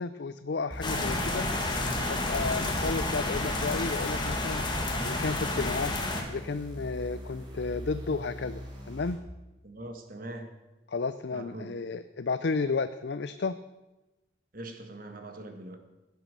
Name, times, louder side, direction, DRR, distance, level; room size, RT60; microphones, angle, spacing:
voice 1, 0.0-1.5 2.1-4.6 5.0-5.9 6.3-8.6 8.9-9.2 10.9-13.6, left 4 dB, 60° left, 12 dB, 0.5 m, -32 dB
sound 1, 0.7-9.1, equal, 25° right, 4.4 m, -42 dB
sound 2, 0.8-6.2, left 2 dB, 25° left, 1.9 m, -30 dB
voice 2, 9.6-10.5 11.3-11.8 14.5-15.8, right 1 dB, 45° right, 5 dB, 1.7 m, -42 dB
16.0 x 9.1 x 6.6 m, 1.1 s
head